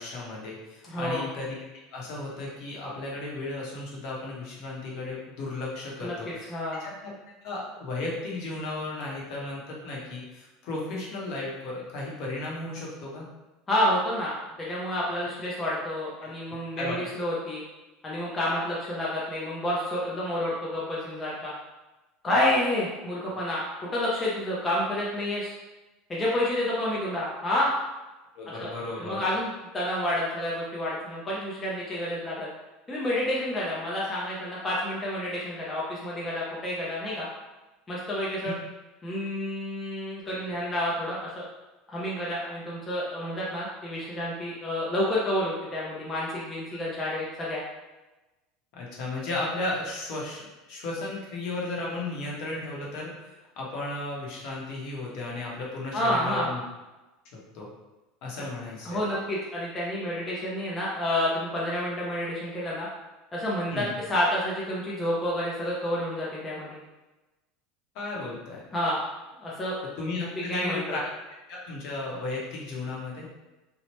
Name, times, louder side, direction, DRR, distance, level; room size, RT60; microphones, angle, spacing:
voice 1, 0.0-1.6 1.9-6.5 6.8-7.1 7.4-13.3 16.2-16.3 16.8-17.0 28.3-29.2 38.5-38.6 46.3-46.4 48.7-56.6 57.3-57.7 58.2-59.0 63.7-63.9 67.9-68.6 70.0-71.0 71.5-73.3, left 2 dB, 50° left, -3 dB, 0.8 m, -34 dB
voice 2, 0.9-1.3 6.0-6.8 13.7-17.6 18.0-21.5 22.2-25.5 26.1-27.7 28.6-28.7 29.0-29.5 29.7-32.5 32.9-37.3 37.9-38.5 39.0-41.4 41.9-47.6 55.9-56.5 58.8-62.9 63.3-66.8 68.7-69.0 69.4-69.7 70.3-70.8, left 1 dB, 15° left, -6 dB, 0.4 m, -29 dB
2.9 x 2.0 x 3.0 m, 1.1 s
cardioid pair, 165°, 0 cm